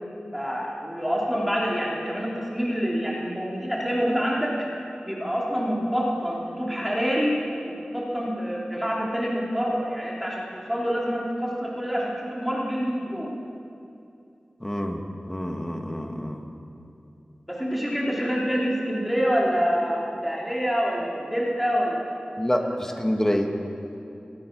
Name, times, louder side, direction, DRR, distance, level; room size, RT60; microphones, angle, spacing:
voice 1, 0.3-4.7 5.1-7.3 7.6-13.3 17.5-22.1, equal, 5° right, -4 dB, 3.1 m, -26 dB
voice 2, 14.6-16.4 22.4-23.5, equal, 15° left, 4 dB, 1.7 m, -27 dB
24.0 x 8.7 x 6.1 m, 2.6 s
cardioid pair, 45°, 3 cm